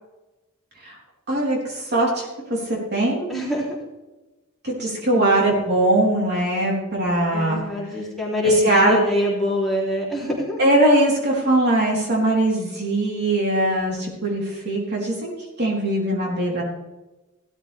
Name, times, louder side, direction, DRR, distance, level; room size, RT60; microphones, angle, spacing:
voice 1, 1.3-3.3 4.6-7.6 8.4-9.0 10.6-15.3 15.6-16.6, right 1 dB, 50° right, -3 dB, 3.9 m, -21 dB
voice 2, 3.3-3.7 5.1-5.7 7.3-10.6, left 1 dB, ahead, -6 dB, 3.4 m, -24 dB
16.0 x 13.0 x 3.5 m, 1.1 s
head